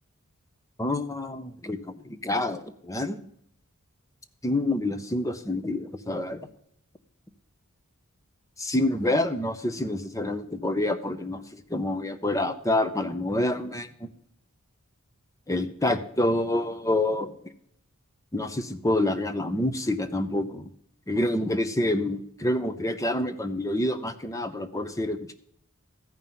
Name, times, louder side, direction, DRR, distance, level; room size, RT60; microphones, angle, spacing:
voice 1, 0.8-3.2 4.4-6.5 8.6-14.1 15.5-17.3 18.3-20.7 21.1-25.3, left 1 dB, 15° left, 10 dB, 0.8 m, -27 dB
14.0 x 5.5 x 7.5 m, 0.69 s
head